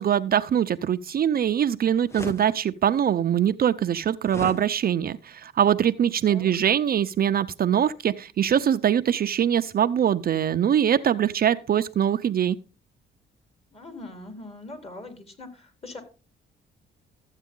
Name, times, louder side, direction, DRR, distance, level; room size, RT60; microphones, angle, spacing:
voice 1, 0.0-12.6, right 9 dB, 50° right, 0.6 m, -23 dB
sound 1, 2.1-2.4 4.3-4.6, left 2 dB, 15° left, 0.7 m, -34 dB
voice 2, 13.7-16.0, left 2 dB, 30° left, 3.8 m, -41 dB
13.5 x 8.2 x 3.8 m
cardioid pair, 90°, 20 cm